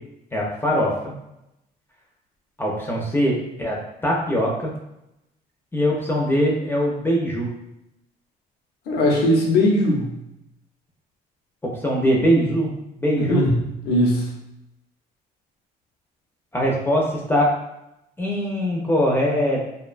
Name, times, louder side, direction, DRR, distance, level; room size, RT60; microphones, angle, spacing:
voice 1, 0.3-1.1 2.6-4.7 5.7-7.5 11.6-13.5 16.5-17.5 18.2-19.6, equal, 15° left, -3 dB, 0.5 m, -22 dB
voice 2, 8.9-10.1 13.2-13.6 13.8-14.3, left 1 dB, 80° left, -1 dB, 0.6 m, -19 dB
2.5 x 2.2 x 2.4 m, 0.86 s
cardioid pair, 110°, 17 cm